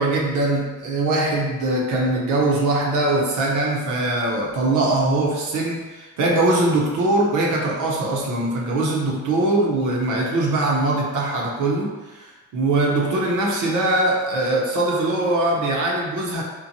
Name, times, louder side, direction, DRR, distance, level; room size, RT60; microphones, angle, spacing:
voice 1, 0.0-16.4, right 2 dB, 80° right, -2 dB, 0.7 m, -22 dB
3.0 x 2.1 x 2.6 m, 1.2 s
cardioid pair, 90°, 30 cm